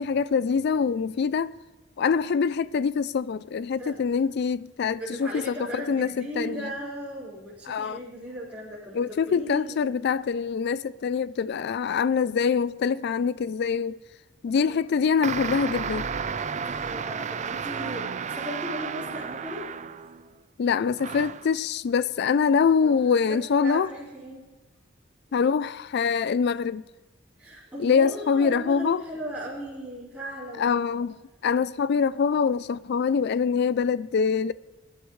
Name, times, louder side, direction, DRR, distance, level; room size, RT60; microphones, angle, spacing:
voice 1, 0.0-1.5 2.0-6.7 7.7-8.0 8.9-14.0 14.4-16.1 20.6-23.9 25.3-26.8 27.8-29.0 30.6-31.2 31.4-34.5, left 6 dB, 55° left, 0.4 m, -24 dB
voice 2, 4.8-9.8 14.7-14.8 16.6-19.9 20.2-20.3 22.8-23.0 23.3-24.4 25.3-25.4 27.4-30.8, equal, 10° right, 4.3 m, -37 dB
sound 1, 15.2-20.3 21.0-21.5, right 6 dB, 35° right, 0.4 m, -32 dB
21.0 x 11.5 x 3.2 m
head